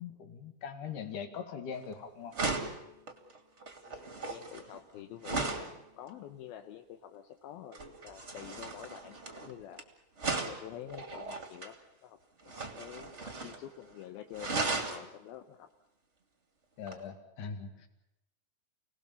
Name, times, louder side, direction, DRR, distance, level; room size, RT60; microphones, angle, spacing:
voice 1, 0.0-2.4 16.8-17.9, left 6 dB, 60° left, 7 dB, 3.4 m, -41 dB
sound 1, 1.7-1.9 2.3-5.8 7.7-9.8 10.2-11.7 12.4-13.6 13.9-14.0 14.3-15.0 16.9-17.0, right 3 dB, 25° right, 1.8 m, -37 dB
voice 2, 3.8-9.9 10.2-12.2 12.4-15.7, left 11 dB, 80° left, 6 dB, 2.8 m, -48 dB
29.5 x 19.0 x 7.1 m, 0.91 s
omnidirectional pair, 4.3 m